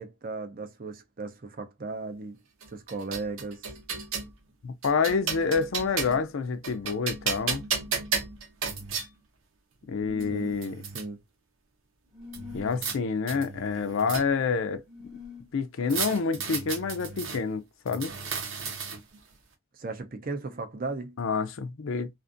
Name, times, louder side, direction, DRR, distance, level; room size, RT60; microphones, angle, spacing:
voice 1, 0.0-2.4 2.7-3.7 10.3-10.6 10.9-11.2 19.7-21.2, right 3 dB, 40° right, 0.5 m, -36 dB
sound 1, 2.6-4.3 4.8-6.3 6.6-9.1 9.8-9.9 10.2-11.0 12.3-13.0 13.3-14.5 15.9-17.4 17.9-19.2, right 5 dB, 75° right, 0.8 m, -34 dB
voice 2, 4.6-7.6 9.9-10.8 12.5-14.8 15.5-18.1 21.2-22.1, left 5 dB, 70° left, 0.4 m, -28 dB
sound 2, 9.9-10.6 12.1-12.8 14.9-15.5, left 3 dB, ahead, 0.6 m, -44 dB
2.5 x 2.5 x 2.4 m
head